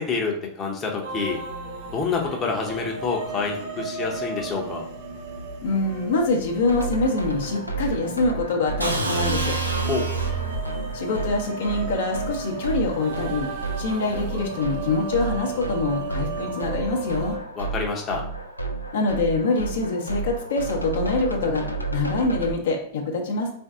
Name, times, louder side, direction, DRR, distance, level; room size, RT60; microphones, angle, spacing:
voice 1, 0.0-1.4 1.9-4.8 9.9-10.1 17.6-18.2, left 4 dB, 25° left, 0 dB, 0.7 m, -27 dB
sound 1, 1.0-17.4, right 3 dB, 50° right, 0.8 m, -35 dB
voice 2, 5.6-9.6 10.9-13.5 13.8-17.4 18.9-23.5, left 3 dB, 60° left, 1 dB, 0.8 m, -25 dB
sound 2, 6.7-22.5, right 3 dB, 85° left, 0.4 m, -32 dB
sound 3, 8.8-10.7, right 3 dB, 85° right, 0.6 m, -26 dB
3.9 x 2.6 x 3.6 m, 0.64 s
figure-of-eight pair, 90°, 0 cm